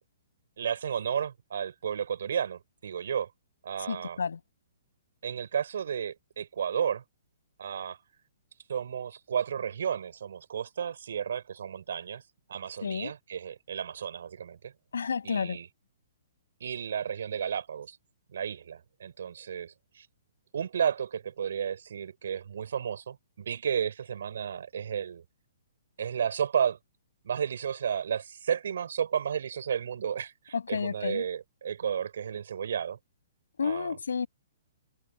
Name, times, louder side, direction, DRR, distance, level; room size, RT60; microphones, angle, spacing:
voice 1, 0.6-3.3 3.6-4.2 5.2-7.0 7.6-8.0 8.7-12.2 12.5-14.7 15.2-15.7 16.6-18.0 18.3-20.1 20.5-25.2 26.0-26.8 27.2-33.0 33.6-34.0, right 8 dB, 70° right, 4.4 m, -32 dB
voice 2, 3.9-4.4 12.8-13.1 14.9-15.6 30.5-31.2 33.6-34.3, left 6 dB, 90° left, 7.4 m, -31 dB
hypercardioid pair, 150°, 0 cm